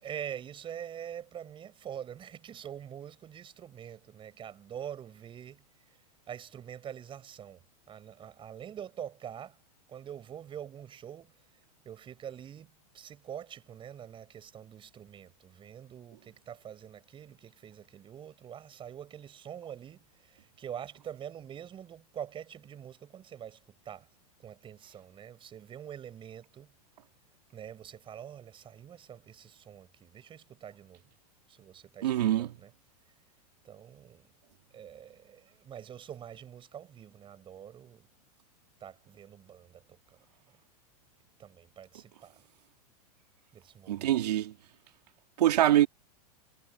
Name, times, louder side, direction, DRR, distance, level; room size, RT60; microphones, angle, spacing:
voice 1, 0.0-5.6 6.3-7.6 7.9-9.6 9.9-11.3 11.8-23.6 23.9-24.1 24.4-26.7 27.5-31.0 31.5-32.1 32.4-32.7 33.6-34.2 34.7-38.1 38.8-39.8 41.4-42.4 43.5-44.2, right 9 dB, 25° right, 5.6 m, -45 dB
voice 2, 32.0-32.5 43.9-44.5 45.4-45.9, right 12 dB, 80° right, 2.7 m, -24 dB
hypercardioid pair, 125°, 20 cm